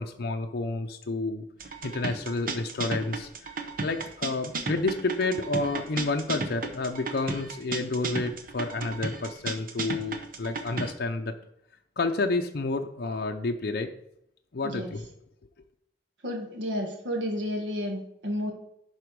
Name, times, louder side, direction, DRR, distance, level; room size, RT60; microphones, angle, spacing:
voice 1, 0.0-1.5 1.8-3.3 3.8-11.3 12.0-13.9 14.5-15.1, left 3 dB, 60° left, 4 dB, 0.6 m, -30 dB
sound 1, 1.6-10.9, right 3 dB, 50° right, 0.9 m, -34 dB
voice 2, 16.2-18.5, equal, 80° right, 3 dB, 1.6 m, -31 dB
11.0 x 4.4 x 4.7 m, 0.76 s
head